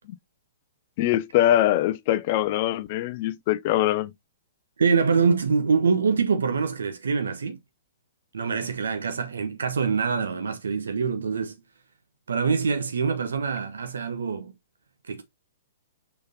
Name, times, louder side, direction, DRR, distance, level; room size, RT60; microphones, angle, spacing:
voice 1, 1.0-4.1, left 13 dB, 40° left, 0.5 m, -23 dB
voice 2, 4.8-7.6 8.3-11.6 12.3-14.5 15.1-15.2, right 5 dB, 70° right, 1.2 m, -24 dB
6.5 x 5.8 x 2.7 m
figure-of-eight pair, 115°, 0 cm